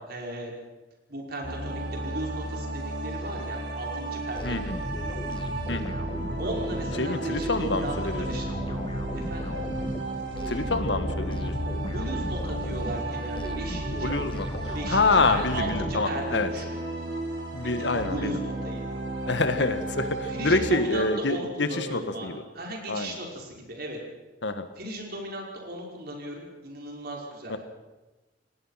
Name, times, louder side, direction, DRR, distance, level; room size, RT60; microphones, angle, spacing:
voice 1, 0.1-0.5 1.1-4.7 6.4-8.8 9.1-9.5 11.9-14.1 14.7-16.7 17.6-18.8 20.3-24.0 24.8-27.6, right 1 dB, 55° right, 0 dB, 5.5 m, -36 dB
sound 1, 1.4-20.7, right 2 dB, 75° right, 5.2 m, -34 dB
voice 2, 4.4-4.7 5.7-5.9 7.0-8.2 10.5-11.5 13.5-13.6 14.0-16.5 17.5-18.4 19.3-22.4 22.9-23.2 24.4-24.7 27.5-27.6, left 3 dB, 70° left, 9 dB, 1.7 m, -27 dB
sound 2, 4.4-16.6, equal, 25° left, 1.7 m, -35 dB
27.5 x 18.5 x 5.9 m, 1.1 s
head